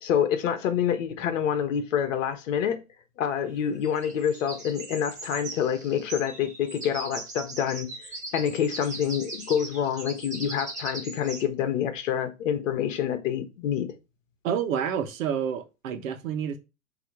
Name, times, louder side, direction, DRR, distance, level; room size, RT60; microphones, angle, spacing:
voice 1, 0.0-2.8 3.2-13.9, left 8 dB, 55° left, 1.3 m, -27 dB
sound 1, 3.8-11.4, right 2 dB, 15° right, 0.3 m, -39 dB
voice 2, 14.4-16.6, right 8 dB, 60° right, 1.2 m, -29 dB
6.8 x 3.0 x 4.7 m
hypercardioid pair, 150°, 46 cm